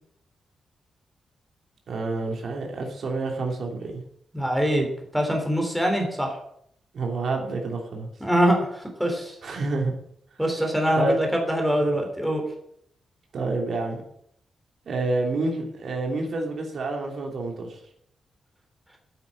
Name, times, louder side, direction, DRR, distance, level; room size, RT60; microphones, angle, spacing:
voice 1, 1.9-3.9 6.9-8.1 9.4-9.9 10.9-11.1 13.3-14.0 14.9-17.8, right 3 dB, 55° right, 1 dB, 3.0 m, -28 dB
voice 2, 4.3-4.9 5.1-6.3 8.2-9.4 10.4-12.4, equal, ahead, 1 dB, 3.5 m, -23 dB
11.5 x 9.2 x 8.6 m, 0.69 s
wide cardioid pair, 160°, 0 cm